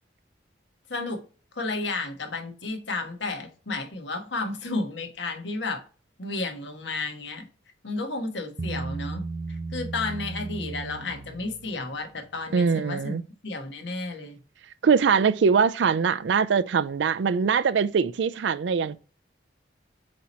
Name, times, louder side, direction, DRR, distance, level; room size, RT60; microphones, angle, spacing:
voice 1, 0.9-1.2 1.5-5.8 6.2-7.5 7.8-13.2 13.4-14.4, left 3 dB, 75° left, 1.4 m, -32 dB
Bass guitar, 8.6-12.0, right 3 dB, 45° right, 0.7 m, -35 dB
voice 2, 12.5-13.2 14.8-19.0, right 6 dB, 75° right, 0.4 m, -22 dB
7.5 x 2.9 x 4.2 m
head